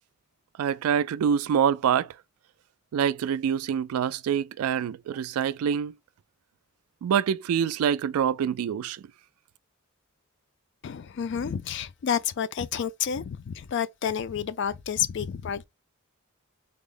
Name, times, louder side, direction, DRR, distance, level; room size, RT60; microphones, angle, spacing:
voice 1, 0.6-2.1 2.9-5.9 7.0-9.0, right 8 dB, 85° right, 0.3 m, -25 dB
voice 2, 10.8-15.7, left 8 dB, 55° left, 0.3 m, -30 dB
3.4 x 2.0 x 3.7 m
head